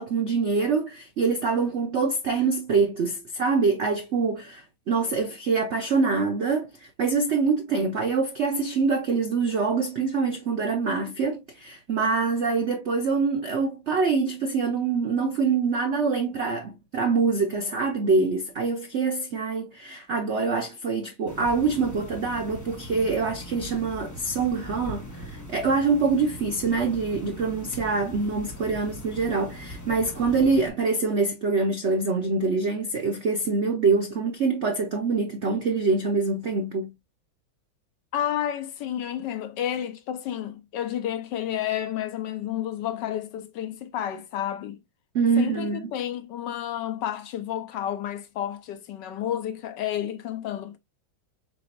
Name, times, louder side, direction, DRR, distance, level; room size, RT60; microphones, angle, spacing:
voice 1, 0.0-36.9 45.1-45.9, right 4 dB, 70° right, 0.6 m, -25 dB
sound 1, 21.3-30.7, equal, 15° left, 0.7 m, -41 dB
voice 2, 38.1-44.8 45.4-50.8, left 10 dB, 70° left, 1.2 m, -31 dB
4.9 x 4.2 x 2.5 m
omnidirectional pair, 2.2 m